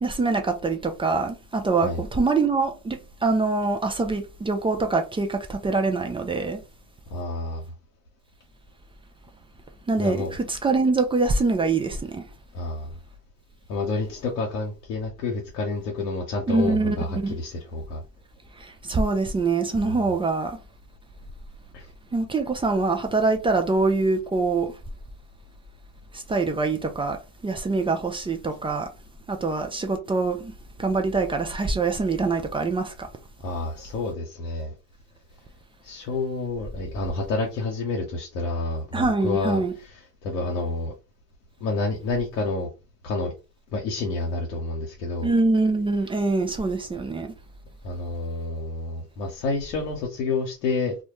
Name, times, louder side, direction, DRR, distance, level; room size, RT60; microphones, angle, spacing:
voice 1, 0.0-6.6 9.9-12.2 16.5-17.4 18.6-20.6 22.1-24.7 26.1-27.2 27.4-28.9 29.3-30.5 30.8-33.1 38.9-39.7 45.2-47.3, right 3 dB, 15° right, 0.3 m, -24 dB
voice 2, 7.1-7.6 10.0-10.4 12.5-13.0 13.7-18.0 19.9-20.0 21.7-21.9 33.4-34.7 35.8-40.9 41.6-42.7 43.0-43.3 43.7-45.3 47.8-51.0, left 3 dB, 85° left, 0.7 m, -29 dB
2.1 x 2.1 x 2.9 m
hypercardioid pair, 60°, 47 cm